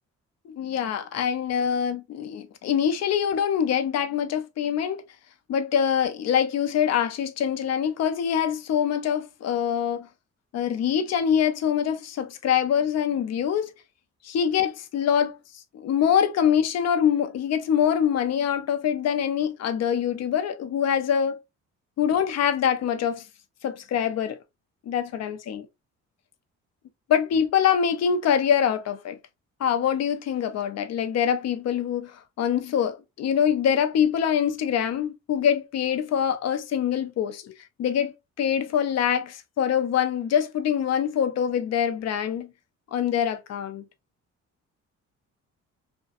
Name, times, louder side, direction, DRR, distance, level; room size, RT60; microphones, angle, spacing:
voice 1, 0.5-5.0 5.5-10.1 10.5-13.7 14.2-15.3 15.7-21.4 22.0-23.2 23.6-24.4 24.9-25.7 27.1-29.2 29.6-37.5 37.8-42.5 42.9-43.8, left 8 dB, 60° left, 0.5 m, -24 dB
2.5 x 2.2 x 2.3 m
cardioid pair, 90°, 30 cm